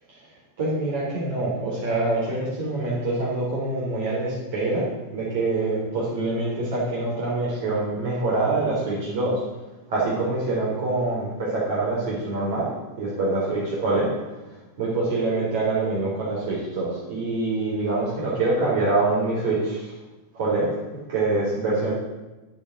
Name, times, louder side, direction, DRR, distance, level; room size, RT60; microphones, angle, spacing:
voice 1, 0.6-9.4 9.9-12.7 13.0-14.1 14.8-19.9 20.3-20.8 21.1-21.9, right 2 dB, 60° right, -6 dB, 4.3 m, -25 dB
8.9 x 8.4 x 7.9 m, 1.1 s
figure-of-eight pair, 90°, 0 cm